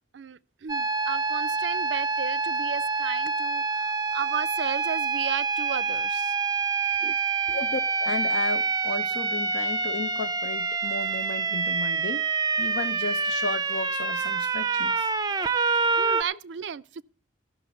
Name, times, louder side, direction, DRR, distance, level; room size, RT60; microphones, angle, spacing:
voice 1, 0.1-6.4 7.0-7.2 7.5-7.6 16.0-17.0, right 7 dB, 80° right, 0.5 m, -35 dB
sound 1, 0.7-16.2, right 4 dB, 20° right, 0.5 m, -27 dB
voice 2, 7.5-12.3 12.6-15.7, left 3 dB, 70° left, 0.7 m, -34 dB
15.0 x 6.2 x 8.2 m
head